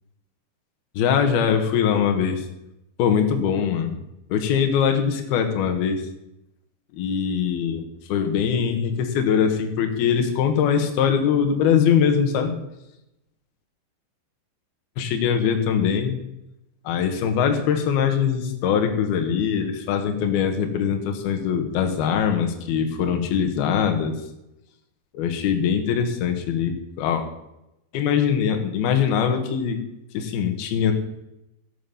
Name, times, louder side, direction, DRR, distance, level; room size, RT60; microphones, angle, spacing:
voice 1, 1.0-2.4 3.0-4.0 4.3-6.0 6.9-12.5 15.0-16.2 16.8-24.1 25.1-27.2 27.9-29.8 30.1-30.9, left 7 dB, 65° left, 5 dB, 3.0 m, -22 dB
12.0 x 8.0 x 7.2 m, 0.87 s
omnidirectional pair, 5.4 m